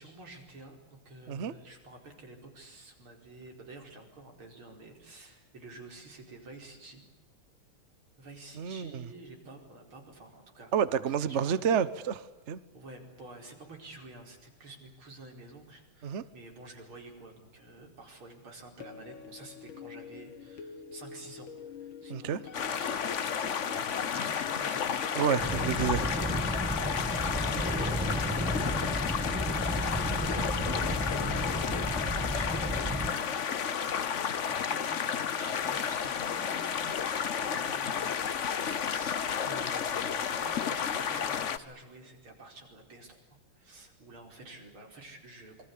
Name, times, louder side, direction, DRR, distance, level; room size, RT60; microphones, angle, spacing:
voice 1, 0.0-7.0 8.2-10.7 11.1-11.6 12.7-25.1 25.9-26.2 26.7-29.9 30.3-45.7, right 2 dB, 85° right, 5.8 m, -50 dB
voice 2, 8.6-9.0 10.7-12.6 16.0-16.2 22.1-22.4 25.1-26.0, right 8 dB, 45° right, 1.0 m, -29 dB
sound 1, 18.8-25.6, left 7 dB, 75° left, 2.2 m, -47 dB
sound 2, 22.5-41.6, left 7 dB, 45° left, 1.1 m, -32 dB
sound 3, 25.4-33.1, equal, 5° right, 1.2 m, -33 dB
27.5 x 22.5 x 8.5 m
omnidirectional pair, 2.2 m